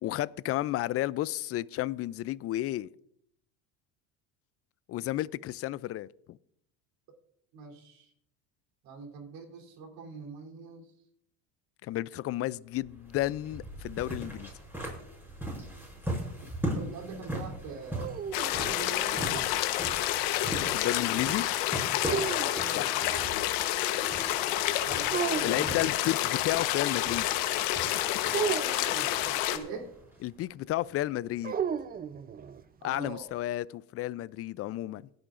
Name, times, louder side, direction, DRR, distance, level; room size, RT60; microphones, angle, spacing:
voice 1, 0.0-2.9 4.9-6.4 11.8-14.5 20.7-21.5 22.7-22.9 25.4-27.3 30.2-31.6 32.8-35.0, left 15 dB, 40° left, 0.4 m, -32 dB
voice 2, 7.5-8.1 8.8-10.9 16.7-18.2 18.7-19.5 22.2-22.4 24.6-25.9 29.5-29.9 32.8-33.3, right 4 dB, 70° right, 3.4 m, -43 dB
sound 1, 12.7-30.4, right 1 dB, 5° right, 6.1 m, -40 dB
sound 2, 17.7-19.6 22.0-23.3 25.1-25.9 28.3-29.4 31.4-32.6, right 7 dB, 25° right, 0.5 m, -35 dB
sound 3, 18.3-29.6, left 14 dB, 80° left, 1.1 m, -29 dB
25.5 x 8.7 x 2.5 m
supercardioid pair, 105°, 38 cm